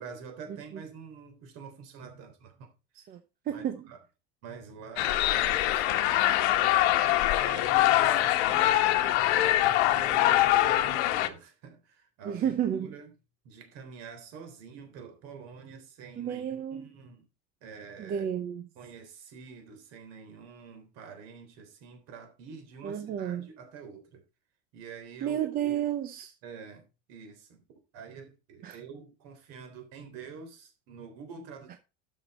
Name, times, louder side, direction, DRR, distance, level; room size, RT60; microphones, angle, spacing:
voice 1, 0.0-2.7 3.0-3.2 3.5-4.0 4.4-6.8 7.3-12.5 12.8-13.1 13.4-17.3 17.6-18.3 18.8-24.2 24.7-25.4 26.4-27.6 27.9-31.8, right 6 dB, 50° right, 3.6 m, -47 dB
voice 2, 3.4-3.9 12.2-12.9 16.2-16.9 18.0-18.7 22.8-23.5 25.2-26.3 28.6-28.8 31.7-31.8, right 10 dB, 25° right, 0.7 m, -31 dB
sound 1, 5.0-11.3, left 14 dB, 80° left, 1.3 m, -24 dB
12.0 x 6.3 x 4.2 m
cardioid pair, 175°, 33 cm